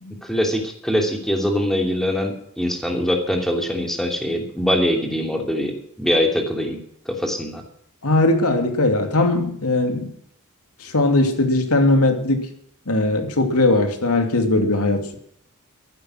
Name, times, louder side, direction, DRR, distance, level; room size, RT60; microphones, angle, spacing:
voice 1, 0.2-6.8 7.1-7.6, equal, ahead, 2 dB, 2.8 m, -23 dB
voice 2, 8.0-10.1 10.8-12.5 12.9-15.2, left 2 dB, 80° left, 5 dB, 2.8 m, -19 dB
14.0 x 12.0 x 6.4 m, 0.67 s
head